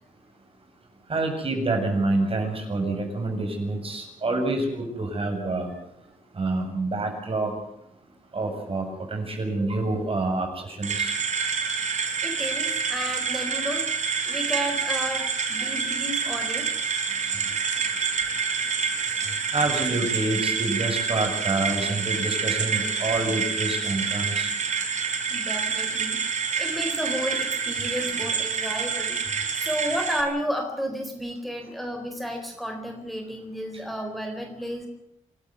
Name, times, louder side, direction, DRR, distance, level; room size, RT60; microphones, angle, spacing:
voice 1, 1.1-5.7 6.3-7.5 8.3-11.1 15.2-15.3 19.5-24.5, right 2 dB, 45° right, 3 dB, 7.7 m, -27 dB
sound 1, 10.8-30.2, right 5 dB, 65° right, 4.4 m, -27 dB
voice 2, 12.2-13.9 14.3-16.7 17.3-17.5 19.2-19.4 25.3-26.2 26.6-34.9, equal, ahead, 3 dB, 4.2 m, -32 dB
27.0 x 13.5 x 9.6 m, 0.80 s
cardioid pair, 85°, 13 cm